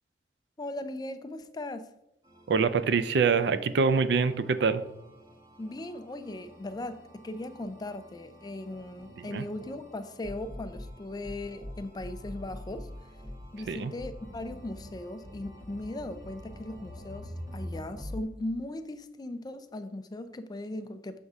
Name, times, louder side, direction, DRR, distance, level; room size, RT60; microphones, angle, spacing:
voice 1, 0.6-1.9 5.6-12.9 13.5-21.2, left 1 dB, 20° left, 0.4 m, -38 dB
sound 1, 2.2-18.2, left 1 dB, 20° right, 1.4 m, -46 dB
voice 2, 2.5-4.8 9.2-9.4 13.7-13.9, right 5 dB, 65° right, 0.4 m, -25 dB
6.3 x 3.5 x 5.4 m
head